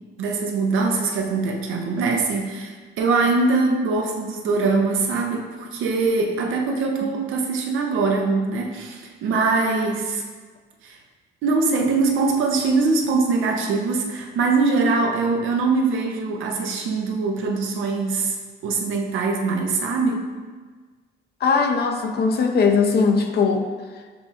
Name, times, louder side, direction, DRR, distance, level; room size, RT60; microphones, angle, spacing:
voice 1, 0.2-10.2 10.8-11.0 11.4-18.3 18.6-20.2, right 3 dB, 85° right, 2 dB, 0.7 m, -22 dB
voice 2, 21.4-23.7, left 5 dB, 55° left, 5 dB, 0.5 m, -19 dB
7.3 x 2.7 x 2.4 m, 1.4 s
cardioid pair, 90°, 20 cm